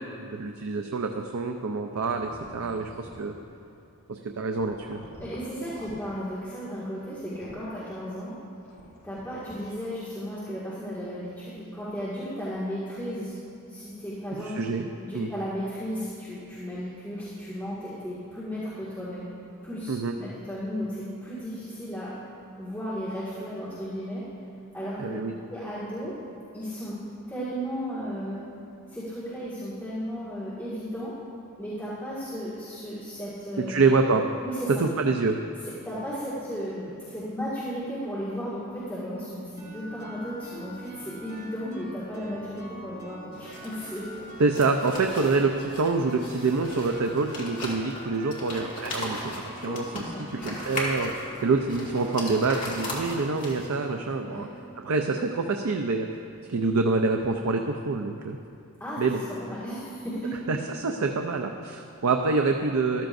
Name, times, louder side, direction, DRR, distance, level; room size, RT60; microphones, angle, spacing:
voice 1, 0.0-3.3 4.1-5.0 14.4-14.9 15.1-15.3 19.9-20.1 25.0-25.3 33.6-34.2 34.8-35.4 44.4-54.5 54.8-56.1 56.5-58.4 59.0-59.2 60.5-63.1, right 3 dB, 70° right, 4 dB, 0.5 m, -26 dB
sound 1, 2.0-3.5 4.5-6.2 7.1-7.8 8.6-9.6, left 1 dB, 90° left, 1.5 m, -47 dB
voice 2, 5.2-8.3 9.0-13.3 13.7-14.5 14.9-19.3 19.6-22.1 22.6-24.3 24.7-25.1 25.5-26.1 26.5-27.0 27.3-28.4 28.9-31.2 31.6-33.9 34.4-34.8 35.8-44.1 49.7-49.8 50.1-50.6 54.2-54.5 58.8-59.0 59.3-60.4, equal, 10° left, -12 dB, 1.9 m, -35 dB
sound 2, 39.6-55.2, equal, 30° right, 2.3 m, -44 dB
sound 3, 43.3-53.9, left 1 dB, 35° left, 2.0 m, -37 dB
13.5 x 13.0 x 2.6 m, 2.7 s
head